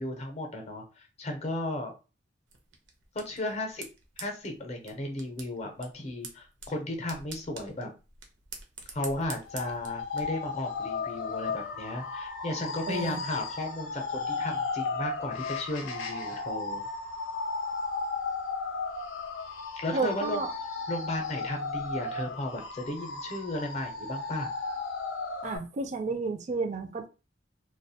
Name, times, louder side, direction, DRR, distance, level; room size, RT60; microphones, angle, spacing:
voice 1, 0.0-1.9 3.1-3.9 4.2-7.9 8.9-16.9 19.8-20.5 20.9-24.5, left 1 dB, 35° left, 0.6 m, -35 dB
sound 1, 2.5-10.2, right 5 dB, 80° right, 0.6 m, -47 dB
sound 2, 9.5-25.6, left 4 dB, 90° left, 0.5 m, -35 dB
voice 2, 12.9-13.2 19.9-20.5 25.4-27.1, right 4 dB, 40° right, 0.3 m, -31 dB
2.4 x 2.2 x 2.6 m
head